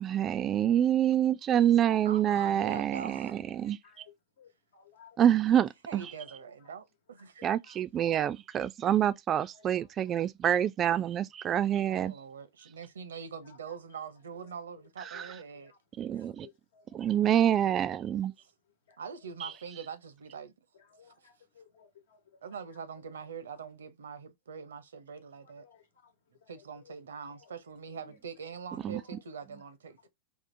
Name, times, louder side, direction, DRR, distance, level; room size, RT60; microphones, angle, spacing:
voice 1, 0.0-3.8 5.2-6.1 7.4-12.1 15.1-15.3 16.0-16.5 16.9-18.3 19.4-19.5 28.8-29.0, right 10 dB, 30° right, 0.3 m, -27 dB
voice 2, 2.0-3.3 5.9-7.4 11.9-15.7 16.1-16.2 19.0-20.5 22.4-25.6 26.5-30.1, right 6 dB, 90° right, 0.6 m, -43 dB
voice 3, 3.6-5.2 7.2-7.8 9.5-10.0 13.5-13.6 14.7-14.8 15.1-15.2 15.5-15.8 16.2-17.2 18.9-19.0 19.4-19.6 20.7-22.4 25.1-26.1 26.4-27.0 27.3-27.5 29.0-29.2, left 7 dB, 75° left, 1.2 m, -60 dB
3.6 x 2.4 x 2.6 m
hypercardioid pair, 110°, 0 cm